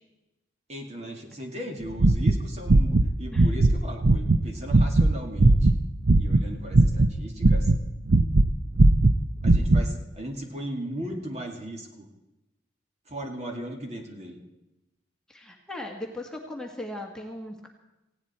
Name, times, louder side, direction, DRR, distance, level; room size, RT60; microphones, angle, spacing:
voice 1, 0.7-5.8 6.2-7.7 9.4-12.1 13.1-14.4, right 1 dB, 35° right, 2 dB, 2.3 m, -37 dB
sound 1, 1.9-3.1 3.4-3.7 4.0-6.5 6.7-8.5 8.8-9.8, right 2 dB, 60° right, 0.7 m, -18 dB
voice 2, 15.3-17.7, left 1 dB, 5° left, 0 dB, 1.7 m, -38 dB
18.5 x 16.5 x 4.4 m, 0.96 s
head